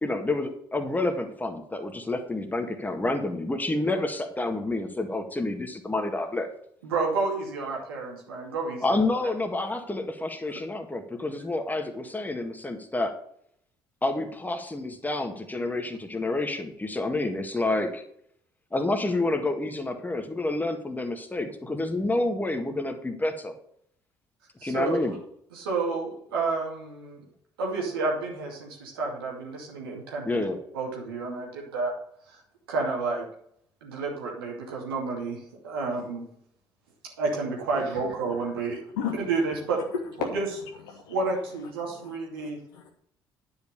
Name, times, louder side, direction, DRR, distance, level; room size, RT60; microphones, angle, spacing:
voice 1, 0.0-6.5 8.8-13.1 14.0-18.0 18.7-23.5 24.6-25.2 30.3-30.6, left 2 dB, 15° left, 6 dB, 1.8 m, -29 dB
voice 2, 6.8-9.0 24.6-25.1 25.5-27.2 27.6-30.5 30.7-31.9 32.3-32.4 32.7-33.3 33.8-36.3 37.2-38.8 39.3-39.8 40.2-40.5 41.1-42.6, right 3 dB, 75° right, -2 dB, 2.4 m, -30 dB
voice 3, 42.0-42.9, left 7 dB, 70° left, 1 dB, 1.3 m, -34 dB
10.0 x 5.6 x 6.6 m, 0.69 s
figure-of-eight pair, 50°, 12 cm